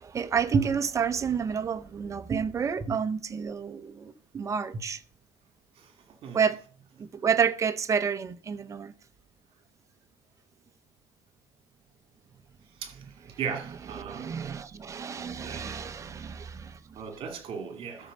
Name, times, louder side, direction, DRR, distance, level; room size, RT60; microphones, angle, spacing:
voice 1, 0.0-5.0 6.3-6.6 7.0-8.9 14.0-16.8, right 6 dB, 20° right, 0.6 m, -29 dB
voice 2, 13.4-14.3 15.4-15.9 16.9-18.1, right 6 dB, 35° right, 2.3 m, -37 dB
12.5 x 4.4 x 6.6 m
cardioid pair, 165°, 15 cm